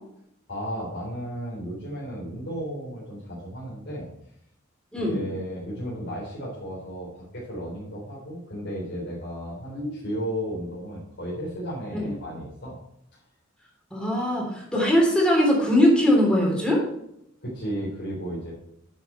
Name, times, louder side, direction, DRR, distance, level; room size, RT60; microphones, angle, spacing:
voice 1, 0.5-4.1 5.1-12.8 17.4-18.5, equal, 55° left, -7 dB, 3.6 m, -34 dB
voice 2, 9.7-10.0 11.9-12.1 13.9-16.8, equal, 5° left, -2 dB, 3.4 m, -21 dB
9.8 x 7.3 x 4.4 m, 0.76 s
head